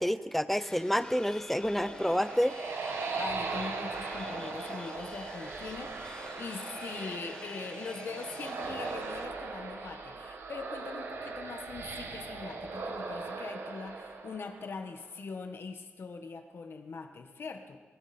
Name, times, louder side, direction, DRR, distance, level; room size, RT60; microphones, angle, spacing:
voice 1, 0.0-2.5, equal, 5° left, 13 dB, 0.6 m, -28 dB
sound 1, 0.6-9.3, left 2 dB, 20° left, 1.6 m, -47 dB
sound 2, 1.5-15.0, right 4 dB, 90° right, 1.7 m, -39 dB
voice 2, 3.2-17.8, left 4 dB, 65° left, 5 dB, 1.5 m, -42 dB
21.5 x 15.0 x 4.4 m, 1.4 s
wide cardioid pair, 90°, 4 cm